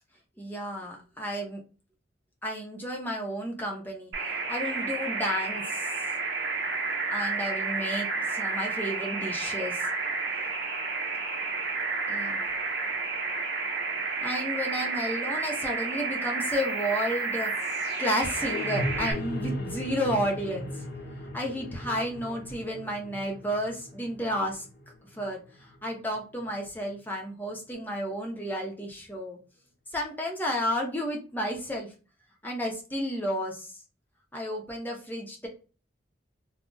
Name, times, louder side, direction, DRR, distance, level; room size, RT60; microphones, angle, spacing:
voice 1, 0.4-1.6 2.4-6.0 7.1-9.9 12.1-12.4 14.0-17.5 18.0-20.8 21.3-24.7 25.1-29.4 29.9-31.9 32.4-33.7 34.3-35.5, equal, 10° left, 0 dB, 0.6 m, -32 dB
sound 1, 4.1-19.1, right 4 dB, 65° right, 0.7 m, -31 dB
sound 2, 16.4-26.4, left 1 dB, 60° left, 0.7 m, -38 dB
2.4 x 2.0 x 3.7 m, 0.34 s
head